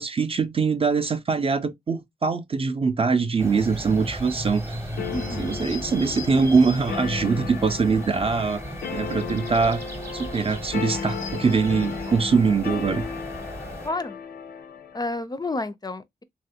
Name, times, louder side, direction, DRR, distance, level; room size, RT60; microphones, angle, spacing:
voice 1, 0.0-4.7 5.4-8.6 8.9-9.8 10.1-13.0, right 5 dB, 35° right, 0.4 m, -23 dB
sound 1, 3.4-13.9, right 1 dB, 15° right, 0.8 m, -36 dB
sound 2, 5.0-15.0, left 6 dB, 90° left, 0.4 m, -34 dB
voice 2, 5.1-5.5 13.8-14.2 14.9-16.2, left 2 dB, 25° left, 0.4 m, -30 dB
3.1 x 2.4 x 2.7 m
cardioid pair, 55°, 16 cm